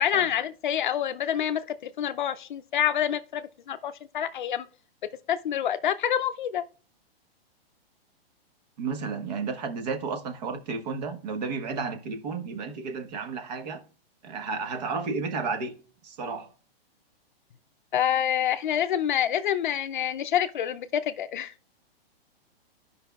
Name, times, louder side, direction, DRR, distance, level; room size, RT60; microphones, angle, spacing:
voice 1, 0.0-4.7 5.3-6.6 17.9-21.5, left 10 dB, 55° left, 0.5 m, -27 dB
voice 2, 8.8-13.8 14.2-15.7 16.0-16.5, right 4 dB, 40° right, 1.2 m, -32 dB
13.5 x 5.3 x 2.3 m
hypercardioid pair, 170°, 30 cm